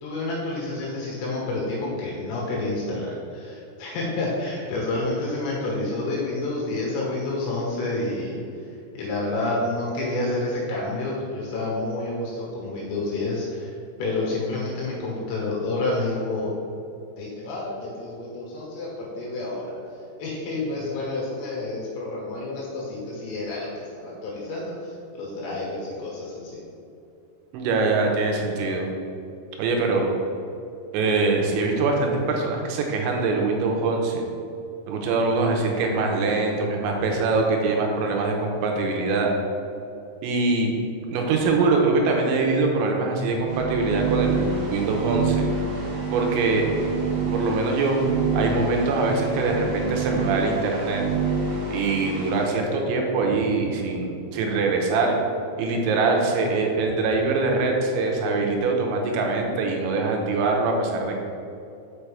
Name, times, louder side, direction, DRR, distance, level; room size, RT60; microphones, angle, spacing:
voice 1, 0.0-8.4 8.9-13.7 14.0-16.5 17.2-19.7 20.2-26.6, left 2 dB, 80° left, -4 dB, 3.7 m, -29 dB
voice 2, 27.5-28.9 29.6-30.1 30.9-34.2 34.9-39.4 40.2-40.8 41.1-45.5 46.1-46.6 47.3-48.0 48.3-51.0 51.7-55.2 55.6-61.2, right 3 dB, 90° right, 1 dB, 3.1 m, -23 dB
sound 1, 43.3-52.4, right 4 dB, 55° right, 2.3 m, -27 dB
6.2 x 6.1 x 3.4 m, 2.6 s
omnidirectional pair, 5.1 m